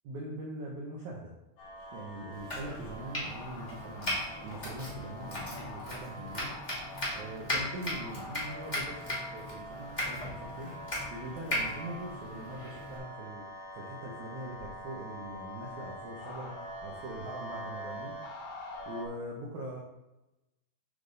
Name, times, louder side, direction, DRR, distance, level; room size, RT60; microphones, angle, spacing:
voice 1, 0.0-1.3 1.9-6.5 7.1-10.7 11.1-13.5 13.7-18.2 18.8-19.8, right 1 dB, 80° right, -2 dB, 1.7 m, -42 dB
sound 1, 1.6-19.1, equal, 80° left, 3.4 m, -45 dB
Domestic sounds home sounds, 2.3-13.0, left 1 dB, 30° left, 0.8 m, -38 dB
11.5 x 3.8 x 3.9 m, 0.98 s
omnidirectional pair, 4.7 m